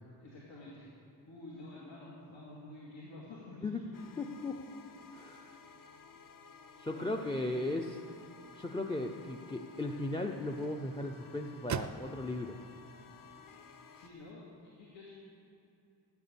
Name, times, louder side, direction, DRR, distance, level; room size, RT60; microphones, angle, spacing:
voice 1, 0.2-0.9 1.3-4.0 5.4-5.9 6.9-7.3 13.9-15.1, left 2 dB, 85° left, -6 dB, 2.4 m, -50 dB
sound 1, 3.9-14.1, left 6 dB, 50° left, 0.8 m, -55 dB
voice 2, 4.2-4.6 5.1-5.5 6.8-8.0 8.5-12.6, left 2 dB, 10° left, 3 dB, 0.5 m, -36 dB
sound 2, 8.1-14.3, right 7 dB, 45° right, 0.4 m, -47 dB
15.5 x 9.3 x 6.9 m, 2.7 s
wide cardioid pair, 180°, 44 cm